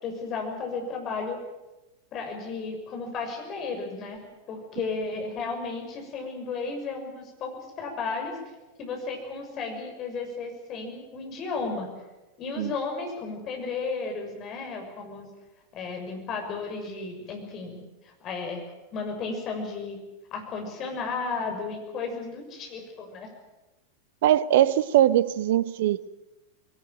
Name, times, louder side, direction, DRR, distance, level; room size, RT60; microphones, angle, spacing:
voice 1, 0.0-1.4 2.1-4.2 4.5-7.5 7.8-8.3 8.8-11.9 12.4-15.2 15.7-18.6 18.9-20.0 20.3-23.3, left 4 dB, 35° left, 3 dB, 6.6 m, -34 dB
voice 2, 24.2-26.1, right 12 dB, 55° right, 18 dB, 0.9 m, -21 dB
21.0 x 19.0 x 9.1 m, 1.0 s
figure-of-eight pair, 90°, 0 cm